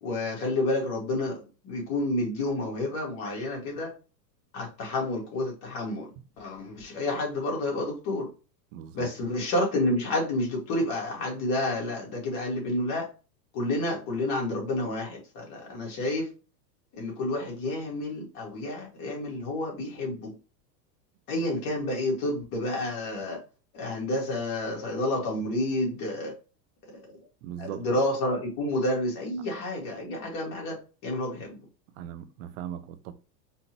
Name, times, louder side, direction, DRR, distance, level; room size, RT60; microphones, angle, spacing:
voice 1, 0.0-3.9 4.5-6.1 6.4-8.3 8.9-13.1 13.5-16.3 16.9-20.3 21.3-23.4 23.7-26.3 26.9-27.1 27.6-30.8 31.0-31.6, left 1 dB, 40° left, 2.0 m, -29 dB
voice 2, 8.7-9.1 27.4-27.8 32.0-33.1, right 10 dB, 55° right, 0.6 m, -39 dB
4.3 x 2.5 x 2.9 m
supercardioid pair, 130°, 50 cm